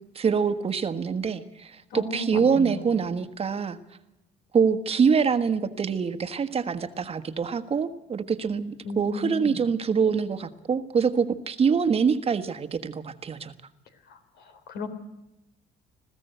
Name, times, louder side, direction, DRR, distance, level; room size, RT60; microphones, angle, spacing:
voice 1, 0.1-3.8 4.5-13.5, right 6 dB, 35° right, 10 dB, 1.4 m, -25 dB
voice 2, 1.9-2.8 8.8-9.6 14.1-14.9, left 2 dB, 75° left, 9 dB, 3.4 m, -35 dB
21.5 x 15.5 x 8.0 m, 0.92 s
cardioid pair, 110°, 17 cm